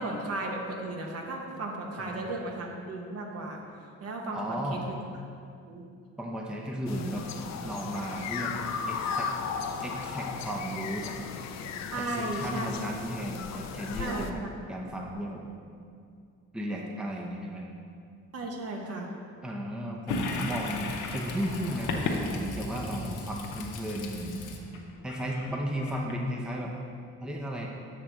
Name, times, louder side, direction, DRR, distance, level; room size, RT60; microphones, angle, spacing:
voice 1, 0.0-3.6 4.0-5.0 5.7-5.8 11.9-12.7 14.0-14.5 18.3-19.1, right 2 dB, 55° right, 0 dB, 1.1 m, -35 dB
voice 2, 2.0-2.4 4.3-4.9 6.2-7.3 7.6-9.3 9.8-11.2 12.0-14.4 14.7-15.4 16.5-17.7 19.4-24.5 25.0-26.7 27.2-27.7, equal, 5° right, -1 dB, 0.7 m, -34 dB
sound 1, 6.9-14.3, left 6 dB, 65° left, 0.5 m, -36 dB
Toilet flush, 20.1-26.6, left 3 dB, 90° left, 0.8 m, -35 dB
7.2 x 3.3 x 6.1 m, 2.3 s
cardioid pair, 90°, 30 cm